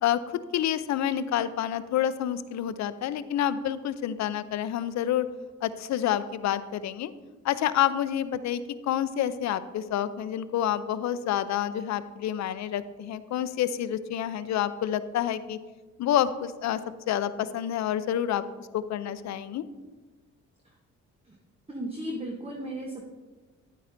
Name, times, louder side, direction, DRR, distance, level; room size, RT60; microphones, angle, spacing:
voice 1, 0.0-5.3 5.6-7.1 7.4-15.6 16.0-16.8 17.1-19.6, left 10 dB, 65° left, 14 dB, 0.5 m, -28 dB
voice 2, 21.7-23.0, right 1 dB, 20° right, 0 dB, 1.0 m, -35 dB
10.0 x 9.3 x 2.6 m, 1.3 s
cardioid pair, 90°, 30 cm